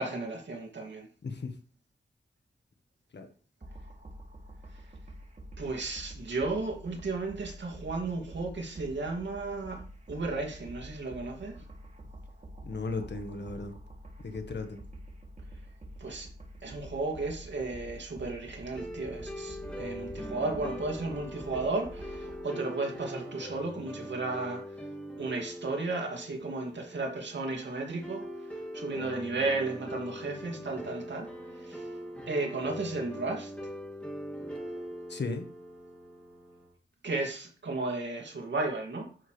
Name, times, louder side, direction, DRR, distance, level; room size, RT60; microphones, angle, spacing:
voice 1, 0.0-1.1 5.6-9.8 10.1-11.5 16.0-16.3 16.6-24.8 25.2-28.2 28.5-31.3 31.6-31.9 32.3-33.5 37.0-39.1, right 3 dB, 85° right, 1 dB, 2.5 m, -34 dB
voice 2, 1.2-1.5 3.1-3.3 12.6-13.7 14.2-14.8 35.1-35.5, left 3 dB, 75° left, 6 dB, 1.5 m, -36 dB
sound 1, 3.6-22.4, right 1 dB, 45° right, 2.9 m, -47 dB
sound 2, 18.7-36.7, equal, 5° left, 2.5 m, -42 dB
10.0 x 7.0 x 3.4 m, 0.40 s
cardioid pair, 55°, 18 cm